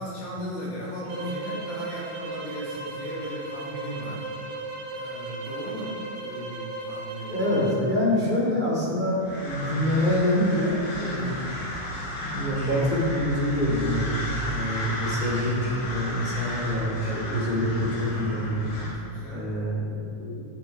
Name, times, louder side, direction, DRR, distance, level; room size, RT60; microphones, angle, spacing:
voice 1, 0.0-4.3 4.9-7.3 8.1-8.3 11.0-11.4 14.5-15.0 19.0-19.5, equal, 50° left, -7 dB, 4.1 m, -36 dB
sound 1, 1.1-7.9, right 2 dB, 80° right, 3.5 m, -36 dB
voice 2, 7.3-11.3 12.1-18.7 19.3-20.4, left 1 dB, 15° left, -7 dB, 1.6 m, -26 dB
sound 2, 9.2-18.9, left 1 dB, 85° left, 4.7 m, -34 dB
12.0 x 9.9 x 4.7 m, 2.4 s
omnidirectional pair, 5.0 m